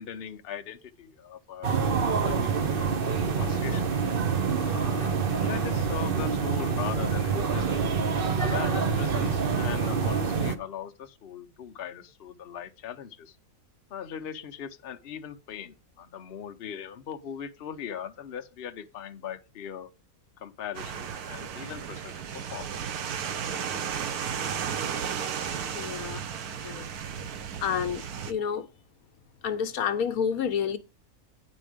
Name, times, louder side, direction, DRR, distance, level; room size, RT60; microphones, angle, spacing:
voice 1, 0.0-2.9 3.3-4.0 4.6-7.9 8.4-13.4 13.9-19.9 20.4-22.7, left 8 dB, 50° left, 0.9 m, -40 dB
sound 1, 1.6-10.6, right 5 dB, 45° right, 0.9 m, -26 dB
sound 2, 20.7-28.3, right 7 dB, 80° right, 1.4 m, -34 dB
voice 2, 25.7-26.2 26.5-26.9 27.6-28.7 29.4-30.8, left 7 dB, 70° left, 1.2 m, -29 dB
9.3 x 5.3 x 5.0 m
omnidirectional pair, 1.6 m